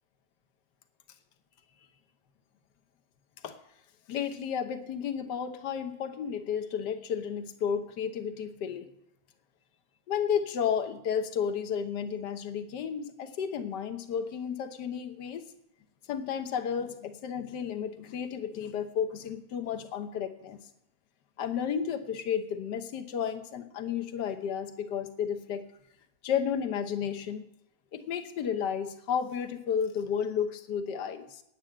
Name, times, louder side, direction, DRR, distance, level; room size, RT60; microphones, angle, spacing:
voice 1, 4.1-8.9 10.1-15.5 16.1-20.6 21.4-25.6 26.2-27.5 27.9-31.4, left 7 dB, 65° left, 8 dB, 1.6 m, -32 dB
9.4 x 9.1 x 8.7 m, 0.78 s
omnidirectional pair, 2.1 m